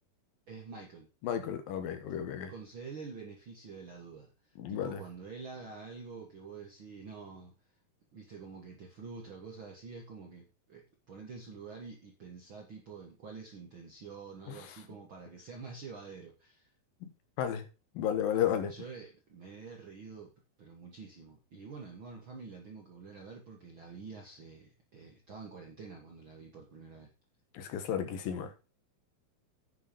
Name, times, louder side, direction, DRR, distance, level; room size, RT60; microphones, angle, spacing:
voice 1, 0.5-1.1 2.5-7.5 8.1-16.7 18.7-20.3 20.6-27.1, right 5 dB, 45° right, 1.9 m, -47 dB
voice 2, 1.2-2.5 4.6-5.0 14.5-14.6 17.0-17.1 17.4-17.6 17.9-18.7 27.5-28.5, left 9 dB, 75° left, 3.0 m, -33 dB
9.9 x 6.9 x 5.2 m
omnidirectional pair, 4.1 m